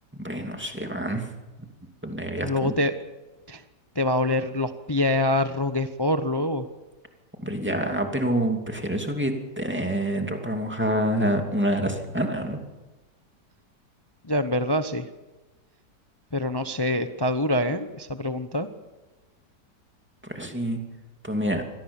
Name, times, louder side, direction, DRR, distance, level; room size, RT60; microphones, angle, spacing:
voice 1, 0.2-1.3 2.0-2.7 7.4-12.6 20.2-20.8 21.2-21.6, right 1 dB, 5° right, 3 dB, 2.6 m, -27 dB
voice 2, 2.4-2.9 3.5-3.6 3.9-6.6 14.2-15.0 16.3-18.7, left 1 dB, 25° left, 9 dB, 0.6 m, -25 dB
25.0 x 18.0 x 7.2 m, 1.2 s
omnidirectional pair, 1.9 m